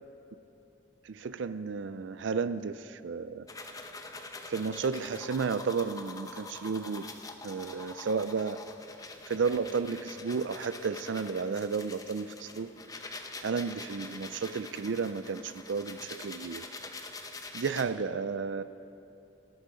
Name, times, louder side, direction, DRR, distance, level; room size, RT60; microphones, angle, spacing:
voice 1, 1.0-3.4 4.5-7.1 7.4-8.6 9.3-12.7 13.4-16.7 17.5-18.6, right 5 dB, 70° right, 13 dB, 0.4 m, -32 dB
sound 1, 3.5-17.8, left 3 dB, 20° left, 0.8 m, -45 dB
19.0 x 12.0 x 5.0 m, 3.0 s
head